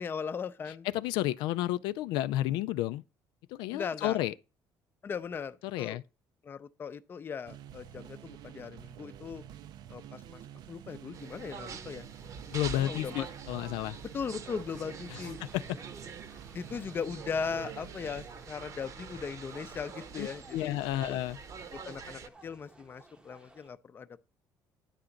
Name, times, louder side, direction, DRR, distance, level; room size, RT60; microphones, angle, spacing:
voice 1, 0.0-0.9 3.7-4.2 5.0-6.0 6.4-9.4 9.9-10.4 10.7-12.1 12.7-13.3 14.0-15.4 16.5-20.8 21.1-21.2 21.7-24.3, left 6 dB, 30° left, 0.5 m, -38 dB
voice 2, 0.9-3.0 3.5-4.3 5.6-6.0 12.5-14.0 15.1-15.2 15.5-15.6 20.2-21.4, left 14 dB, 85° left, 0.3 m, -31 dB
sound 1, 7.5-18.3, right 10 dB, 60° right, 0.5 m, -49 dB
sound 2, 11.1-22.3, right 5 dB, 45° right, 0.9 m, -45 dB
sound 3, 14.3-23.7, right 2 dB, 10° right, 0.8 m, -57 dB
9.8 x 3.8 x 7.0 m
cardioid pair, 130°, 8 cm